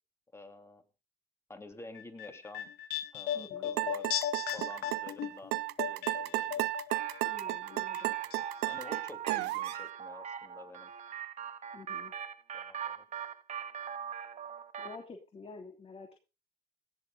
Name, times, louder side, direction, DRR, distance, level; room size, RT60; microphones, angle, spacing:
voice 1, 0.3-0.8 1.5-2.7 3.1-4.1 4.5-5.6 5.9-6.7 8.6-10.9 12.5-13.1, left 2 dB, 15° left, 6 dB, 2.7 m, -50 dB
sound 1, 1.9-7.2 7.5-8.4 8.7-8.8, left 11 dB, 75° left, 1.9 m, -37 dB
voice 2, 3.3-3.7 7.2-8.2 11.7-12.1 14.8-16.2, left 4 dB, 35° left, 3 dB, 3.2 m, -49 dB
sound 2, 3.8-9.8, right 19 dB, 85° right, 0.7 m, -33 dB
sound 3, 6.9-15.0, right 8 dB, 45° right, 1.6 m, -42 dB
17.5 x 7.6 x 5.4 m, 0.32 s
cardioid pair, 110°, 17 cm